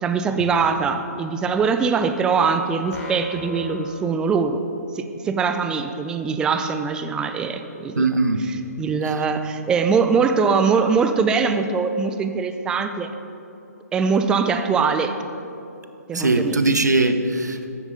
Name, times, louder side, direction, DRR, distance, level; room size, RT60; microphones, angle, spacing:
voice 1, 0.0-4.6 4.9-8.1 8.8-13.1 13.9-15.2 16.1-16.6, right 5 dB, 10° right, 8 dB, 0.3 m, -22 dB
sound 1, 2.9-4.8, left 1 dB, 15° left, 1.4 m, -37 dB
voice 2, 8.0-8.5 9.1-9.2 16.1-17.7, right 2 dB, 80° right, 9 dB, 0.8 m, -20 dB
9.4 x 8.1 x 5.0 m, 2.8 s
figure-of-eight pair, 135°, 9 cm